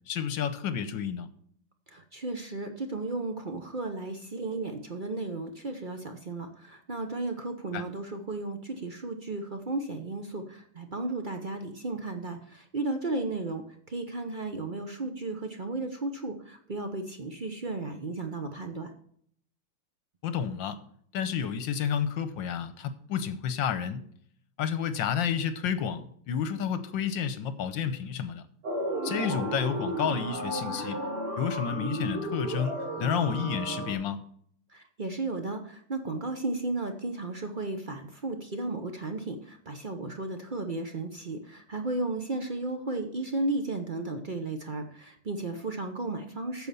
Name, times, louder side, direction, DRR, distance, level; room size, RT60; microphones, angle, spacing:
voice 1, 0.1-1.3 7.7-7.8 20.2-20.8 21.1-24.0 24.6-28.4 29.0-31.0 31.4-34.2, left 7 dB, 65° left, 12 dB, 1.4 m, -30 dB
voice 2, 1.9-18.9 34.7-46.7, right 2 dB, 60° right, 5 dB, 0.5 m, -34 dB
sound 1, 28.6-33.9, right 1 dB, 90° right, 3.6 m, -33 dB
9.2 x 6.9 x 6.9 m, 0.63 s
omnidirectional pair, 2.3 m